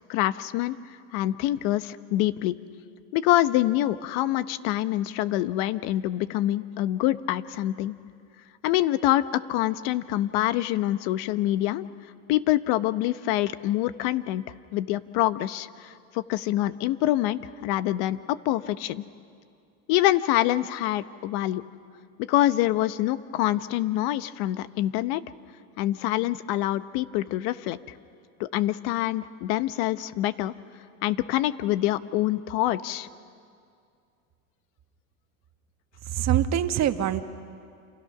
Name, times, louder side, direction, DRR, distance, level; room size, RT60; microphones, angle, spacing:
voice 1, 0.1-0.8 1.1-2.6 3.1-7.9 8.6-11.9 12.3-14.4 14.7-19.0 19.9-21.6 22.2-25.2 25.8-27.8 28.4-30.5 31.0-33.1, left 14 dB, 65° left, 14 dB, 1.0 m, -25 dB
voice 2, 36.1-37.2, right 10 dB, 40° right, 8 dB, 1.4 m, -24 dB
29.0 x 27.5 x 6.0 m, 2.3 s
supercardioid pair, 115°, 40 cm